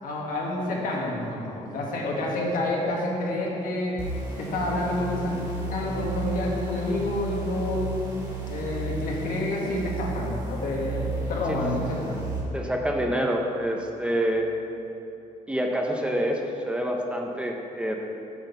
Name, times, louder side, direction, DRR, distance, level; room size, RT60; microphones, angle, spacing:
voice 1, 0.0-4.0 4.4-5.4 5.7-7.9 8.4-12.2, left 1 dB, 80° left, -3 dB, 1.6 m, -28 dB
sound 1, 4.0-12.4, right 2 dB, 30° right, 2.0 m, -33 dB
voice 2, 12.5-14.5 15.5-17.9, equal, 10° right, 1 dB, 0.6 m, -27 dB
7.8 x 4.4 x 6.8 m, 2.9 s
cardioid pair, 150°, 14 cm